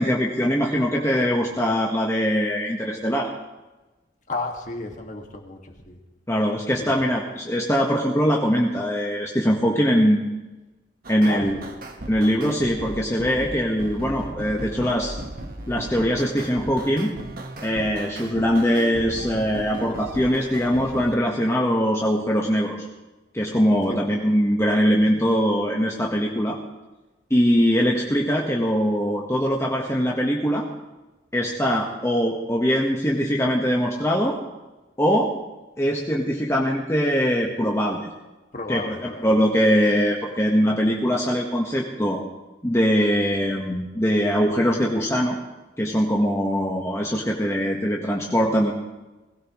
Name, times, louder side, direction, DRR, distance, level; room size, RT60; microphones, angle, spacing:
voice 1, 0.0-3.3 6.3-10.3 11.1-11.5 12.1-15.1 15.7-17.1 17.6-22.9 23.3-26.6 27.3-30.6 31.3-34.4 35.0-35.3 35.8-38.1 38.7-42.2 42.6-45.4 45.8-48.7, equal, 15° left, -2 dB, 1.4 m, -22 dB
voice 2, 4.3-6.0 6.8-7.0 11.3-11.7 23.9-24.0 38.5-39.2, left 2 dB, 45° left, 2 dB, 2.0 m, -33 dB
sound 1, 11.0-21.1, right 1 dB, 50° right, 1.5 m, -36 dB
20.5 x 16.5 x 3.2 m, 1.1 s
head